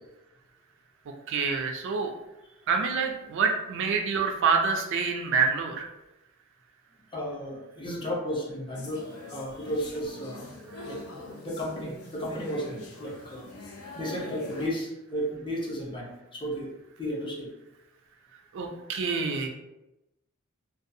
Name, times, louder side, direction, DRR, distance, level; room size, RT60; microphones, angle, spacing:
voice 1, 1.3-2.1 2.7-5.9 18.5-19.5, right 5 dB, 60° right, 3 dB, 0.4 m, -27 dB
voice 2, 7.1-10.5 10.9-11.0 11.4-13.5 14.0-16.7 17.0-17.5 18.7-18.8, equal, 20° left, -3 dB, 0.6 m, -33 dB
sound 1, 8.7-14.7, left 2 dB, 90° left, 0.5 m, -43 dB
2.6 x 2.3 x 2.6 m, 0.94 s
head